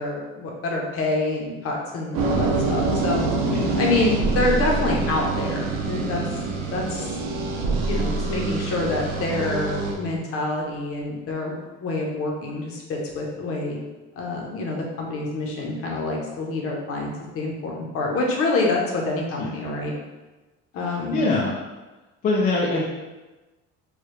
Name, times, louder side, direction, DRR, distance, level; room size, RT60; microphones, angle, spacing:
voice 1, 0.0-3.2 3.8-6.2 6.7-7.1 7.9-13.8 14.2-19.9 20.7-21.2, left 2 dB, 45° left, -1 dB, 0.8 m, -27 dB
sound 1, 2.1-9.9, right 3 dB, 85° right, 0.7 m, -25 dB
voice 2, 3.5-3.8 19.4-19.6 20.8-21.5 22.2-22.8, left 2 dB, 25° left, -4 dB, 0.3 m, -24 dB
4.7 x 2.3 x 3.2 m, 1.2 s
cardioid pair, 175°, 33 cm